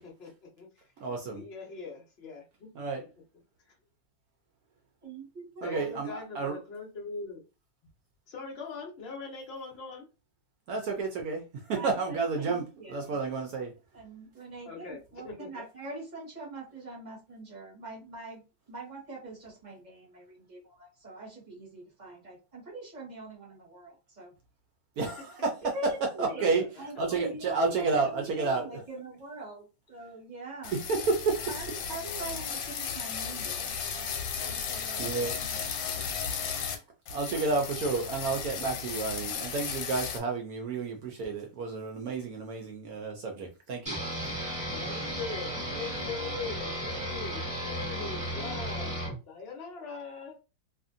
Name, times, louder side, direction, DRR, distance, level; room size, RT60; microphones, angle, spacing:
voice 1, 0.0-0.8 1.3-2.7 3.7-3.8 5.6-7.4 8.3-10.1 14.6-15.7 26.4-26.5 27.0-27.5 33.4-33.8 44.7-50.4, left 4 dB, 60° left, 1 dB, 0.6 m, -42 dB
voice 2, 1.0-1.4 2.7-3.1 5.6-6.6 10.7-13.7 25.0-25.9 26.2-28.8 30.7-31.4 35.0-35.4 37.1-44.3, right 4 dB, 70° right, 2 dB, 0.9 m, -31 dB
voice 3, 5.0-5.9 11.7-13.1 13.9-24.3 25.6-30.7 31.5-35.1 35.4-35.6 35.9-36.2, right 2 dB, 30° right, -3 dB, 0.9 m, -43 dB
sound 1, 30.6-36.8 37.1-40.2, left 7 dB, 85° left, 1.4 m, -35 dB
sound 2, 43.9-49.1, equal, 5° right, 0.9 m, -34 dB
2.7 x 2.5 x 2.5 m, 0.29 s
omnidirectional pair, 2.0 m